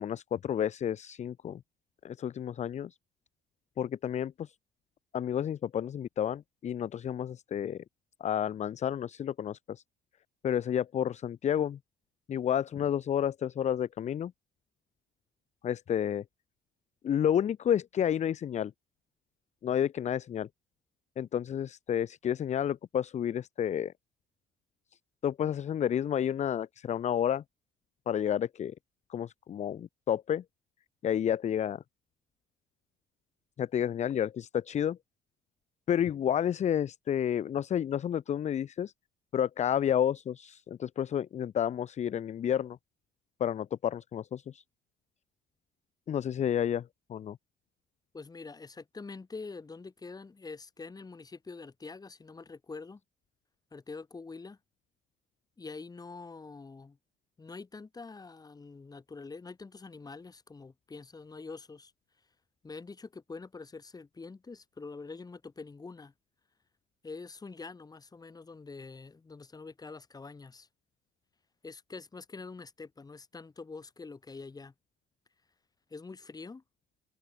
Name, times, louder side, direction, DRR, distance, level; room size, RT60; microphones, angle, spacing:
voice 1, 0.0-1.6 2.0-3.0 3.8-4.5 5.1-7.8 8.2-9.8 10.4-11.8 12.3-14.3 15.6-16.2 17.0-18.7 19.6-20.5 21.2-23.9 25.2-27.4 28.1-28.7 29.1-30.4 31.0-31.8 33.6-35.0 35.9-38.9 39.3-42.8 43.4-44.6 46.1-47.4, left 9 dB, 45° left, 0.8 m, -30 dB
voice 2, 48.1-53.0 53.7-54.6 55.6-57.0 57.4-61.9 62.6-66.1 67.0-70.7 71.6-74.7 75.9-76.6, left 4 dB, 20° left, 7.9 m, -45 dB
cardioid pair, 110°, 17 cm